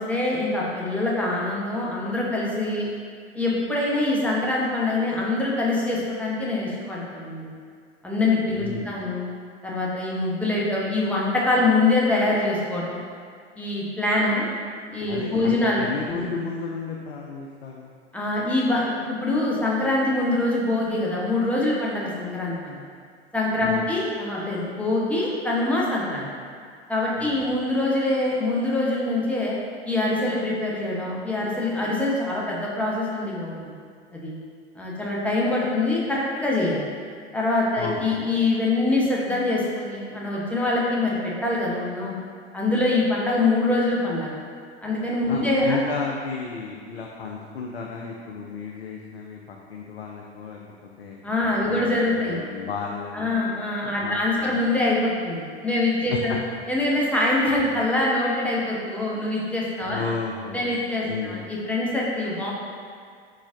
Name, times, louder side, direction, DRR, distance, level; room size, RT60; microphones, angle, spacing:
voice 1, 0.0-2.9 3.3-7.5 8.0-9.3 9.6-13.0 13.6-14.4 14.9-16.3 18.1-22.8 23.3-26.3 26.9-29.6 29.9-33.7 34.1-34.3 34.8-36.8 37.3-42.1 42.5-44.4 44.8-45.8 51.2-52.4 53.1-56.4 56.7-60.0 60.5-62.5, left 2 dB, 5° left, -5 dB, 0.8 m, -24 dB
voice 2, 8.6-8.9 15.1-17.9 23.6-23.9 27.2-27.6 37.8-38.2 45.3-51.4 51.7-53.4 54.0-54.8 56.1-56.4 57.7-57.8 59.9-60.8 61.1-61.4, left 5 dB, 75° left, 0 dB, 0.5 m, -33 dB
4.6 x 3.9 x 2.5 m, 2.1 s
figure-of-eight pair, 80°, 32 cm